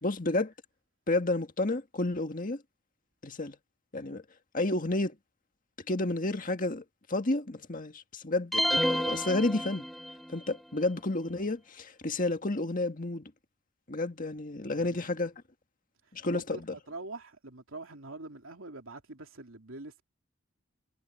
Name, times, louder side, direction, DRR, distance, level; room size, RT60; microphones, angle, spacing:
voice 1, 0.0-0.5 1.1-2.6 3.2-3.6 3.9-4.2 4.5-5.2 5.9-9.9 10.3-13.3 13.9-15.3 16.1-16.7, left 2 dB, 40° left, 1.7 m, -31 dB
sound 1, 8.5-10.3, equal, ahead, 1.3 m, -29 dB
voice 2, 14.7-15.1 16.2-20.0, right 2 dB, 70° right, 3.2 m, -44 dB
head